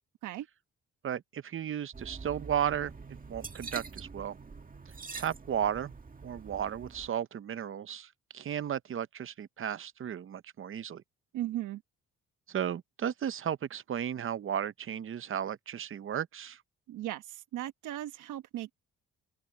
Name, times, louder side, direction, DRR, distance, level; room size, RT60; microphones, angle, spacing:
voice 1, 1.0-2.9 3.3-4.4 5.1-5.9 6.2-11.0 12.5-16.6, right 9 dB, 45° right, 0.8 m, -34 dB
sound 1, 1.9-7.1, right 4 dB, 30° right, 2.0 m, -45 dB
voice 2, 11.3-11.8 16.9-18.7, right 13 dB, 85° right, 1.1 m, -37 dB
open air
cardioid pair, 90°, 30 cm